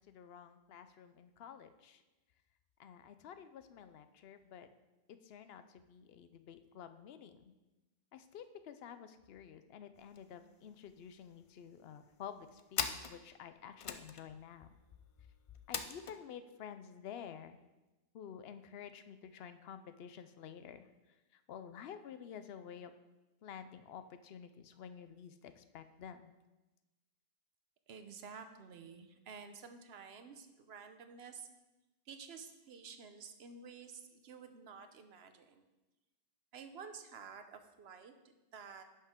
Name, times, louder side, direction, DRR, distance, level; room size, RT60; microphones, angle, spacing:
voice 1, 0.1-2.0 2.8-4.7 5.1-7.4 8.1-14.7 15.7-17.6 18.1-20.8 21.5-22.9 23.4-26.3, left 8 dB, 75° left, 10 dB, 0.8 m, -51 dB
sound 1, 10.0-10.2 10.5-10.6 10.9-11.5 12.1-16.2, left 6 dB, 50° left, 0.4 m, -42 dB
voice 2, 27.9-31.5 32.1-35.6 36.5-38.8, right 6 dB, 80° right, 7 dB, 1.0 m, -51 dB
10.5 x 5.7 x 3.6 m, 1.1 s
omnidirectional pair, 1.1 m